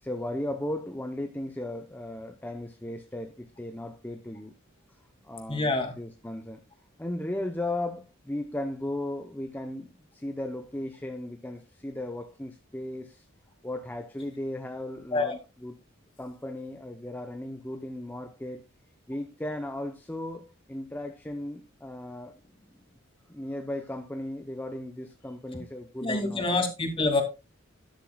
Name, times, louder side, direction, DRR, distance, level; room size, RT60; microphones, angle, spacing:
voice 1, 0.0-4.5 5.2-6.6 7.0-13.3 13.6-15.8 16.2-18.6 19.1-22.8 23.3-26.5, left 1 dB, 10° left, 0.7 m, -36 dB
voice 2, 5.5-5.9 15.1-15.4 26.0-27.2, left 2 dB, 25° left, 2.5 m, -26 dB
13.0 x 10.5 x 2.3 m
head